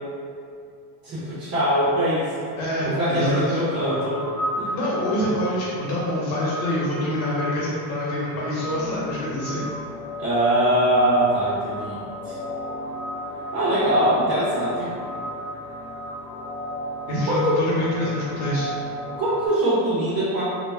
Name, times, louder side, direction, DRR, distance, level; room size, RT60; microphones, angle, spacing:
voice 1, 1.0-2.5 2.8-4.2 4.6-4.7 10.2-12.4 13.5-14.9 17.3-17.5 19.2-20.4, right 1 dB, 25° right, -9 dB, 0.6 m, -22 dB
voice 2, 2.6-3.6 4.7-9.6 17.1-18.7, left 1 dB, 70° left, -8 dB, 1.1 m, -25 dB
sound 1, 3.7-19.5, equal, 45° left, 0.5 m, -34 dB
2.2 x 2.1 x 3.4 m, 2.4 s
supercardioid pair, 125°, 50 cm